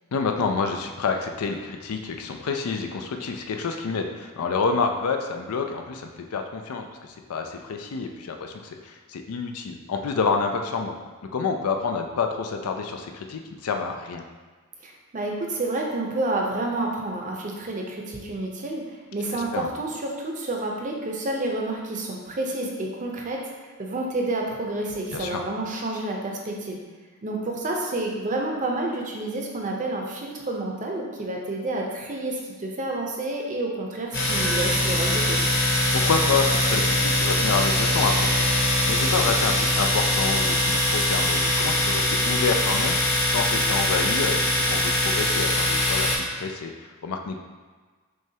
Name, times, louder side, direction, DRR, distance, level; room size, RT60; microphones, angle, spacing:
voice 1, 0.1-6.9 7.3-10.9 11.3-14.2 19.3-19.7 25.1-25.4 35.9-38.5 38.9-47.4, left 4 dB, 90° left, 4 dB, 0.4 m, -28 dB
voice 2, 14.8-23.5 23.8-26.8 27.2-35.4, right 2 dB, 35° right, 0 dB, 0.6 m, -29 dB
Domestic sounds home sounds, 34.1-46.2, left 1 dB, 45° left, 1.0 m, -22 dB
6.2 x 2.3 x 2.8 m, 1.4 s
head